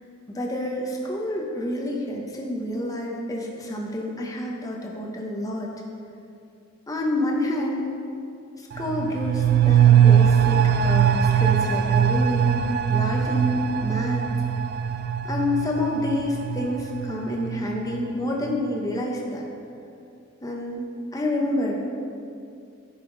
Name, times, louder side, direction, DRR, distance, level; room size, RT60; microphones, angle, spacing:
voice 1, 0.3-5.7 6.9-7.9 8.6-14.2 15.2-19.4 20.4-20.9 21.1-21.9, left 1 dB, 15° left, -2 dB, 0.9 m, -28 dB
sound 1, 8.7-18.1 18.4-18.5, right 8 dB, 50° right, 0.3 m, -21 dB
11.0 x 5.7 x 3.9 m, 2.5 s
head